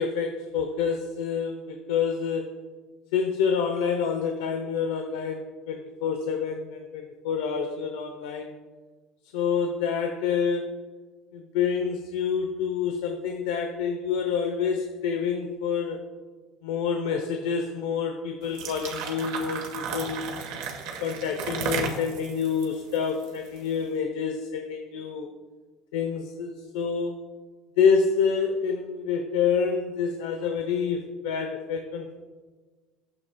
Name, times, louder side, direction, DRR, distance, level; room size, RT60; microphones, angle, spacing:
voice 1, 0.0-2.6 3.1-8.5 9.3-10.7 11.3-16.0 16.6-20.2 21.0-25.3 25.9-27.1 27.8-32.1, left 6 dB, 90° left, 5 dB, 0.7 m, -27 dB
sound 1, 18.4-23.7, right 5 dB, 70° right, 1.6 m, -34 dB
12.0 x 7.9 x 2.3 m, 1.4 s
supercardioid pair, 120°, 0 cm